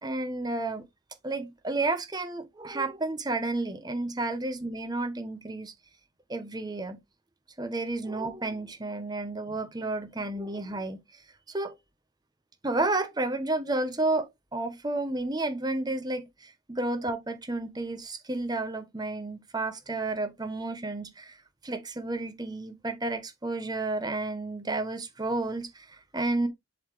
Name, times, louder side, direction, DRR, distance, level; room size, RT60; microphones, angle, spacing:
voice 1, 0.0-0.8 1.2-5.7 6.3-7.0 7.6-11.2 11.5-11.7 12.6-21.4 21.6-26.5, right 2 dB, 20° right, 1.0 m, -31 dB
7.7 x 4.0 x 3.2 m
head